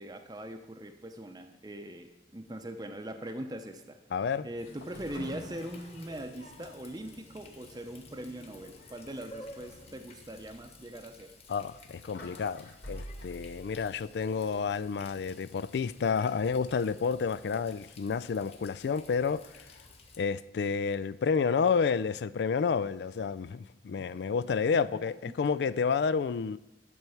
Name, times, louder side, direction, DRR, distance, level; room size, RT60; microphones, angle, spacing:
voice 1, 0.0-4.0 4.4-11.3 25.3-25.4, right 1 dB, 20° right, 0.6 m, -41 dB
voice 2, 4.1-4.5 11.5-19.7 20.2-26.6, left 5 dB, 75° left, 0.3 m, -30 dB
Water tap faucet, 4.6-20.2, left 2 dB, 35° left, 1.0 m, -53 dB
sound 1, 4.7-6.2 6.6-6.7 7.1-7.3 8.9-9.0 9.6-9.8 10.3-10.4 11.5-14.6 15.5-16.1 16.6-16.9, equal, 90° left, 2.9 m, -48 dB
11.0 x 4.6 x 7.0 m
head